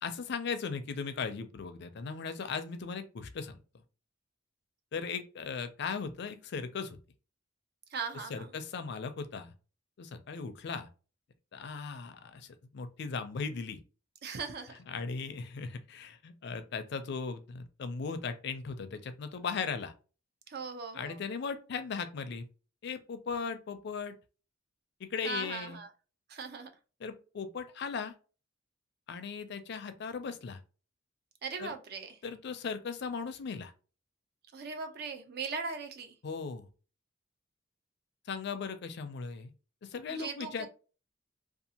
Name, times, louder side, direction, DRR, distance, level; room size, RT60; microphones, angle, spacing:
voice 1, 0.0-3.6 4.9-7.0 8.3-9.5 10.0-10.9 11.5-13.8 14.9-19.9 20.9-22.5 22.8-24.2 25.0-25.8 27.0-28.1 29.1-30.6 31.6-31.7 32.2-33.7 36.2-36.7 38.3-39.5 39.8-40.7, left 5 dB, 60° left, 0.4 m, -38 dB
voice 2, 7.9-8.5 14.2-14.7 20.5-21.2 25.2-25.9 26.3-26.7 31.4-32.2 34.5-36.2 40.1-40.7, right 4 dB, 55° right, 0.5 m, -39 dB
2.6 x 2.4 x 2.7 m
head